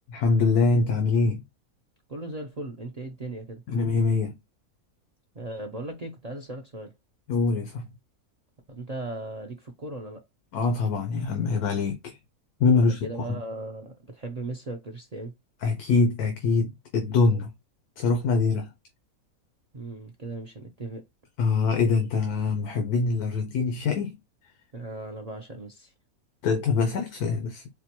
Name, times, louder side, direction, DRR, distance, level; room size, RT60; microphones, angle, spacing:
voice 1, 0.1-1.4 3.7-4.4 7.3-7.9 10.5-12.2 12.6-13.4 15.6-17.5 18.0-18.7 21.4-24.2 26.4-27.6, left 4 dB, 85° left, 1.3 m, -24 dB
voice 2, 2.1-3.6 5.3-6.9 8.7-10.2 12.7-15.3 19.7-21.0 24.7-25.9, right 2 dB, 75° right, 0.3 m, -37 dB
4.5 x 2.2 x 2.9 m
omnidirectional pair, 1.6 m